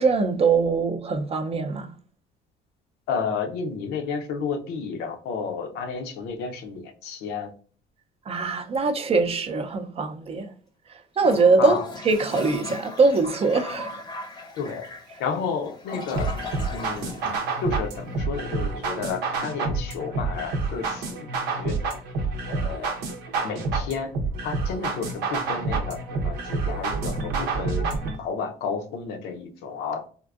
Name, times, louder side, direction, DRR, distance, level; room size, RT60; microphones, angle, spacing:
voice 1, 0.0-1.9 8.3-10.5 11.2-11.8 12.1-13.9, right 4 dB, 35° right, 0.5 m, -22 dB
voice 2, 3.1-7.5 11.6-11.9 14.6-14.9 15.2-16.3 16.7-17.1 17.6-21.3 21.6-21.8 22.5-22.9 23.4-24.1 24.4-27.8 28.2-30.0, left 5 dB, 85° left, 0.6 m, -31 dB
Toilet flush, 11.1-18.1, left 2 dB, 25° left, 0.7 m, -39 dB
sound 1, 16.1-28.1, right 3 dB, 85° right, 0.7 m, -28 dB
3.6 x 2.5 x 2.3 m
cardioid pair, 110°, 17 cm